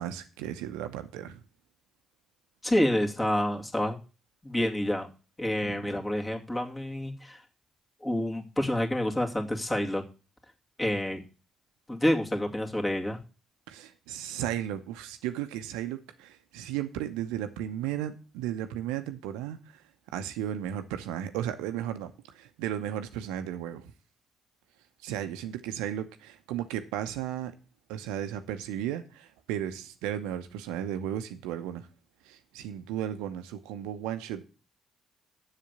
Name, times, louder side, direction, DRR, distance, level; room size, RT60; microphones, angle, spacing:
voice 1, 0.0-1.4 5.6-5.9 13.7-19.8 20.1-23.9 25.0-27.5 27.9-31.9 32.2-34.4, right 11 dB, 75° right, 0.8 m, -35 dB
voice 2, 2.6-4.0 4.4-5.1 5.4-7.4 8.0-10.0 10.8-11.2 11.9-13.2, left 1 dB, 20° left, 2.4 m, -28 dB
7.4 x 6.8 x 8.1 m
hypercardioid pair, 45°, 0 cm